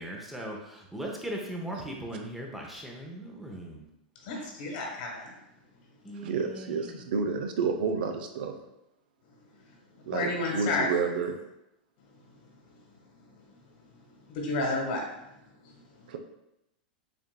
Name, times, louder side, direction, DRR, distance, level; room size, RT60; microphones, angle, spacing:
voice 1, 0.0-3.9 6.0-7.0, right 1 dB, 5° right, -1 dB, 0.7 m, -39 dB
voice 2, 4.2-5.4 10.1-10.9 14.3-15.0, left 2 dB, 65° left, 0 dB, 1.4 m, -30 dB
voice 3, 6.2-8.5 10.1-11.4 16.1-16.2, right 5 dB, 70° right, 5 dB, 0.5 m, -30 dB
6.9 x 2.5 x 2.2 m, 0.86 s
supercardioid pair, 135°, 5 cm